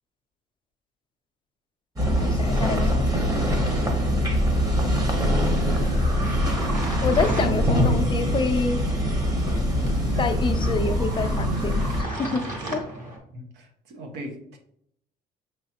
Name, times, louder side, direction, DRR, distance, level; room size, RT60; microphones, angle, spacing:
sound 1, 2.0-12.0, equal, 20° right, 1.0 m, -23 dB
voice 1, 2.2-3.1 6.5-6.7 7.0-8.8 10.2-12.4 12.7-12.9, left 4 dB, 30° left, 7 dB, 0.5 m, -27 dB
sound 2, 3.8-13.2, right 1 dB, 50° right, 1.5 m, -37 dB
voice 2, 13.3-14.6, equal, 85° right, 3 dB, 1.0 m, -39 dB
5.9 x 3.1 x 2.9 m, 0.73 s
cardioid pair, 110°, 17 cm